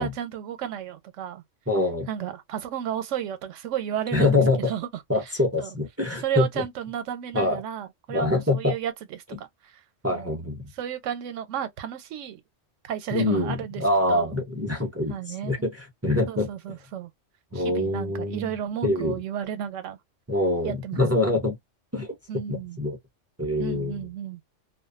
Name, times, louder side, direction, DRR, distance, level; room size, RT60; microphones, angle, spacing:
voice 1, 0.0-1.4 2.1-4.4 4.7-4.9 5.6-5.7 6.2-8.9 9.4-9.5 10.1-10.3 10.8-12.4 12.8-13.8 14.1-14.3 15.1-15.5 16.3-17.1 17.5-20.0 20.6-21.0 22.3-22.8 23.6-24.4, right 10 dB, 85° right, 1.0 m, -32 dB
voice 2, 1.7-2.1 4.1-4.6 5.1-6.6 7.3-7.6 8.1-8.8 10.0-10.6 13.1-16.5 17.5-18.5 18.8-19.1 20.3-21.6 21.9-22.1 22.5-23.0 23.4-24.0, left 2 dB, 25° right, 0.3 m, -25 dB
2.4 x 2.2 x 2.4 m
omnidirectional pair, 1.2 m